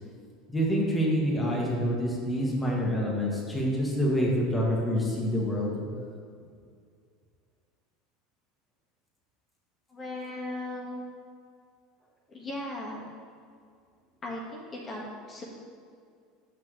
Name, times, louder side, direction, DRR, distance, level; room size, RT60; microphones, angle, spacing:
voice 1, 0.5-5.7, equal, 10° left, -4 dB, 1.5 m, -27 dB
voice 2, 9.9-11.0 12.3-13.1 14.2-15.4, left 1 dB, 30° left, -3 dB, 1.5 m, -37 dB
7.4 x 5.8 x 3.2 m, 2.2 s
hypercardioid pair, 95°, 0 cm